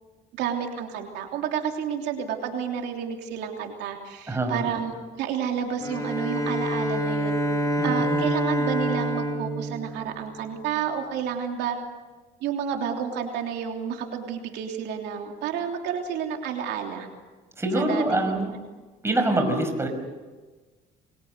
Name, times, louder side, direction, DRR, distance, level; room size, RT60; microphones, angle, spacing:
voice 1, 0.4-7.4 7.8-11.8 12.4-17.1 17.7-18.5, right 8 dB, 85° right, 3 dB, 3.2 m, -30 dB
voice 2, 4.3-4.7 7.8-8.4 17.6-18.6 19.0-19.9, right 2 dB, 15° right, 4 dB, 5.7 m, -25 dB
Bowed string instrument, 5.8-10.6, equal, 20° left, 4.9 m, -27 dB
28.5 x 23.0 x 6.7 m, 1.3 s
cardioid pair, 110°, 17 cm